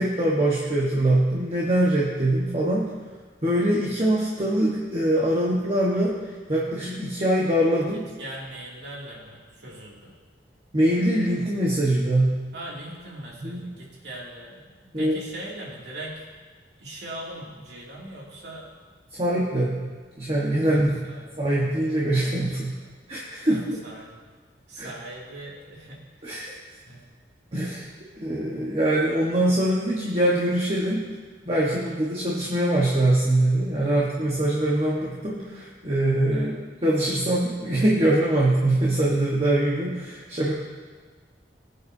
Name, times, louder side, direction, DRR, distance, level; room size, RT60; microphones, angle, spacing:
voice 1, 0.0-2.9 3.4-8.0 10.7-12.3 13.4-13.7 14.9-15.2 19.2-19.8 20.2-21.0 21.4-22.7 23.1-23.8 24.8-24.9 26.2-26.6 27.5-27.9 28.2-31.0 31.4-40.5, right 1 dB, 35° right, -5 dB, 1.4 m, -23 dB
voice 2, 8.2-10.1 12.5-16.3 16.8-18.6 20.6-21.3 22.8-22.9 23.5-24.2 24.7-26.1 26.9-27.1 31.7-32.0 33.8-34.0 36.3-36.6, right 1 dB, 65° right, -4 dB, 2.7 m, -40 dB
20.0 x 8.3 x 2.8 m, 1.4 s
head